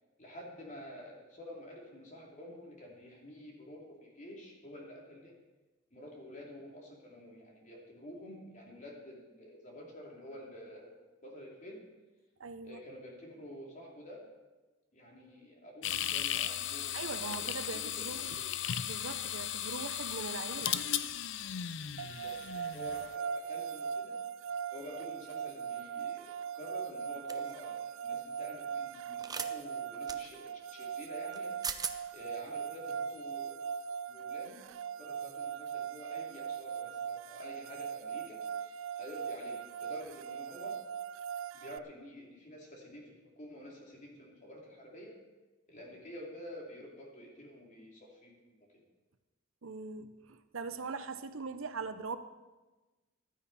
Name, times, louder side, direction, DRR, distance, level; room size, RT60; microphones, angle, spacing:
voice 1, 0.2-5.4 5.9-11.0 11.2-11.8 12.6-14.3 14.9-17.5 18.0-18.7 22.0-24.2 24.7-33.7 34.1-34.6 34.9-40.8 41.5-45.2 45.7-48.7, left 1 dB, 40° left, -2 dB, 3.1 m, -49 dB
voice 2, 12.4-12.8 16.9-18.3 18.8-20.8 49.6-52.2, right 4 dB, 85° right, 10 dB, 0.8 m, -41 dB
sound 1, 15.8-23.1, left 10 dB, 65° left, 0.5 m, -36 dB
sound 2, 22.0-41.8, right 7 dB, 70° right, 0.3 m, -40 dB
sound 3, 27.3-27.5 29.2-29.5 30.1-30.2 31.3-31.4 31.6-32.0, right 6 dB, 20° right, 0.6 m, -37 dB
15.0 x 12.0 x 4.2 m, 1.2 s
head